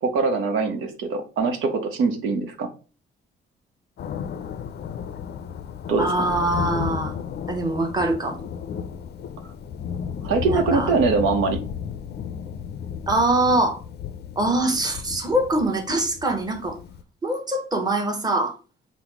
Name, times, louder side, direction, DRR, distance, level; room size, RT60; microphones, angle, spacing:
voice 1, 0.0-2.7 5.9-6.3 10.2-11.6, right 4 dB, 85° right, 5 dB, 0.7 m, -23 dB
Thunder, 4.0-17.0, left 7 dB, 55° left, 0.4 m, -33 dB
voice 2, 6.0-7.1 7.5-8.4 10.5-10.9 13.1-13.8 14.4-16.8 17.2-18.6, right 2 dB, 20° right, 3 dB, 1.0 m, -23 dB
4.0 x 2.1 x 4.5 m, 0.35 s
cardioid pair, 90°, 20 cm